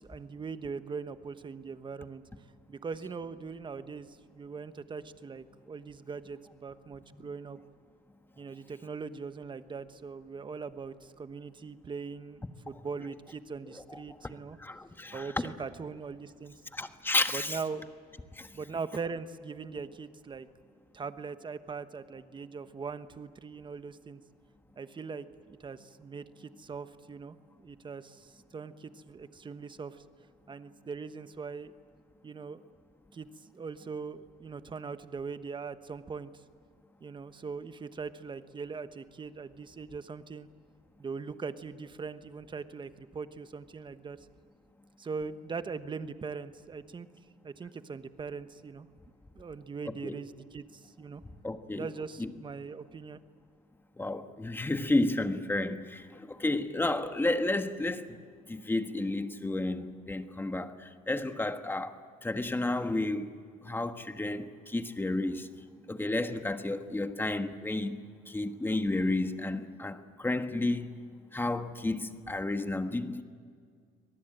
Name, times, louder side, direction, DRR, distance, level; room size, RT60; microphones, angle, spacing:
voice 1, 0.0-2.2 2.7-7.6 8.4-14.6 15.1-16.5 17.3-17.8 18.5-20.5 20.9-24.2 24.8-30.0 30.5-31.7 32.2-32.6 33.1-33.3 33.5-36.3 37.0-40.5 41.0-44.2 45.0-47.1 47.4-48.9 49.3-51.2 51.7-53.2, right 5 dB, 30° right, 1.2 m, -41 dB
voice 2, 13.7-14.0 14.6-15.3 16.7-17.6 18.3-18.5 49.9-50.2 51.4-51.9 52.2-52.3 54.0-62.0 62.2-63.3 63.6-65.5 65.9-68.0 68.3-71.0 71.3-73.2, left 2 dB, 10° left, 1.4 m, -32 dB
25.0 x 19.0 x 9.0 m
cardioid pair, 110°, 17 cm